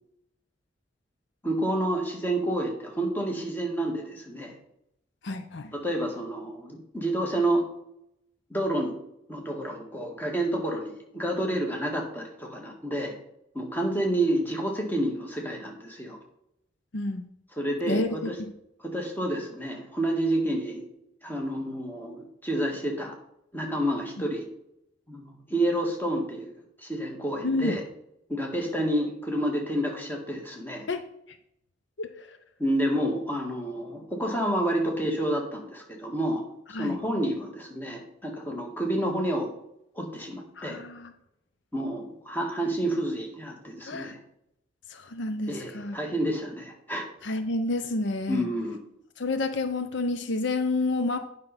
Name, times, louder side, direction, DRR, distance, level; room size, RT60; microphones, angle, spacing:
voice 1, 1.4-4.5 5.7-7.6 8.5-8.9 9.3-13.1 13.5-16.2 17.6-18.3 18.8-20.8 21.2-23.1 23.5-24.5 25.1-26.5 26.8-27.8 28.3-30.9 32.6-36.4 36.7-39.5 39.9-40.8 41.7-44.2 45.5-47.0 48.3-48.8, right 1 dB, 10° left, 0 dB, 1.6 m, -29 dB
voice 2, 5.2-5.7 16.9-17.3 17.9-18.5 27.4-27.8 30.9-31.4 32.0-32.4 36.7-37.0 40.6-41.1 43.8-44.2 44.9-46.0 47.2-48.5 49.2-51.2, left 2 dB, 65° left, 9 dB, 0.6 m, -29 dB
8.8 x 5.5 x 5.7 m, 0.78 s
head